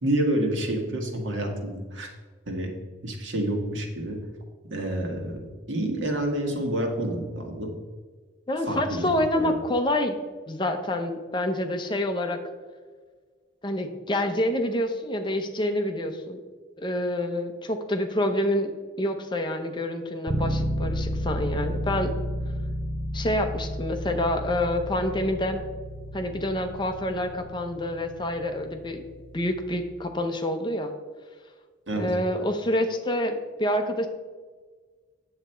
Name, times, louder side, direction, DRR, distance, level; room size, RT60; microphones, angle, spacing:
voice 1, 0.0-2.1 2.5-2.7 3.0-4.2 4.7-7.8 8.7-9.6 31.9-32.1, right 1 dB, 75° right, 2 dB, 1.6 m, -28 dB
voice 2, 8.5-10.1 10.5-12.4 13.6-16.4 16.8-18.7 19.0-22.1 23.1-25.6 26.1-29.0 29.3-30.9 31.9-34.1, left 1 dB, 25° left, 6 dB, 0.7 m, -27 dB
sound 1, 20.3-30.0, equal, 10° right, 0.6 m, -32 dB
8.9 x 7.2 x 4.4 m, 1.5 s
head